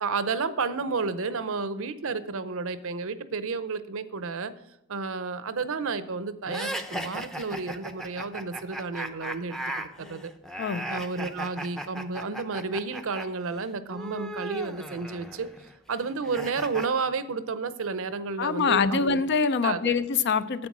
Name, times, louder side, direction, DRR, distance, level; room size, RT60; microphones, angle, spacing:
voice 1, 0.0-4.5 4.9-10.3 10.9-15.5 15.9-19.2 19.6-20.0, right 4 dB, 65° right, 13 dB, 0.7 m, -31 dB
sound 1, 6.5-13.3 13.5-16.9, right 1 dB, ahead, 0.6 m, -37 dB
voice 2, 18.4-20.7, left 5 dB, 50° left, 13 dB, 0.5 m, -24 dB
9.5 x 8.0 x 6.0 m, 0.82 s
head